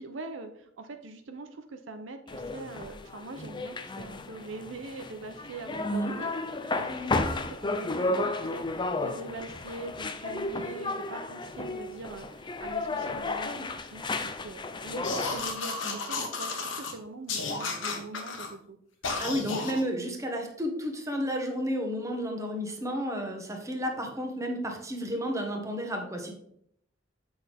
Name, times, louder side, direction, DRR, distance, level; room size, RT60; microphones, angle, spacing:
voice 1, 0.0-6.3 6.8-18.8, right 3 dB, 80° right, 7 dB, 0.7 m, -43 dB
sound 1, 2.3-15.5, left 2 dB, 25° left, 0.5 m, -33 dB
voice 2, 5.8-6.2 15.8-15.9 19.2-26.3, equal, 15° right, 2 dB, 1.4 m, -32 dB
sound 2, 15.0-16.9 17.3-18.5 19.0-19.8, left 4 dB, 85° left, 1.4 m, -33 dB
7.9 x 6.2 x 3.6 m, 0.70 s
head